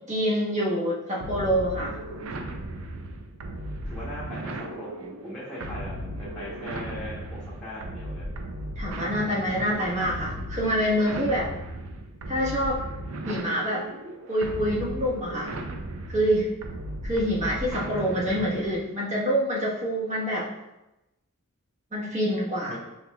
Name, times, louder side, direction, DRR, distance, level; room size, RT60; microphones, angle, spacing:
voice 1, 0.1-2.0 8.8-11.5 12.3-12.8 13.3-13.9 14.3-15.5 16.1-16.5 17.0-20.5 21.9-22.8, equal, 35° right, -6 dB, 1.2 m, -26 dB
sound 1, 1.2-18.8, right 1 dB, 70° right, 0.5 m, -36 dB
voice 2, 3.8-8.3 22.7-22.8, left 1 dB, 5° left, -8 dB, 1.0 m, -39 dB
5.6 x 4.1 x 2.3 m, 0.95 s
head